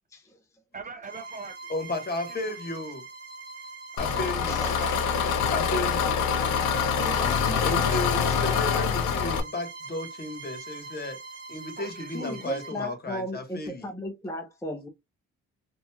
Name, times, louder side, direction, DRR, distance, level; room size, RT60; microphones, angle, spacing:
voice 1, 0.7-1.6 2.5-2.6 4.8-5.3 7.0-7.5 7.7-7.9 8.5-8.8 11.8-12.5, right 4 dB, 30° right, 0.4 m, -42 dB
Bowed string instrument, 1.0-12.8, right 3 dB, 55° right, 1.4 m, -43 dB
voice 2, 1.7-3.0 4.0-4.6 5.5-6.2 7.6-11.2 11.5-13.9, left 2 dB, 30° left, 1.2 m, -34 dB
Engine, 4.0-9.4, left 6 dB, 90° left, 0.7 m, -25 dB
voice 3, 4.5-4.9 6.9-7.7 12.1-14.9, equal, 10° left, 0.7 m, -36 dB
2.9 x 2.6 x 2.2 m
cardioid pair, 90°, 30 cm